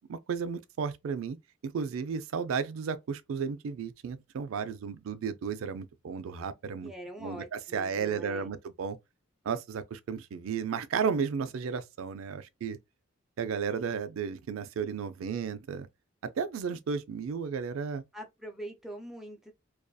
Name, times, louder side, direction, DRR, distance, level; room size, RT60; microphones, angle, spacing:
voice 1, 0.1-1.4 1.6-6.9 7.2-9.0 9.4-12.8 13.4-15.9 16.2-18.0, right 6 dB, 90° right, 0.4 m, -33 dB
voice 2, 6.8-8.5 18.1-19.5, right 1 dB, ahead, 0.5 m, -43 dB
2.5 x 2.3 x 2.2 m
head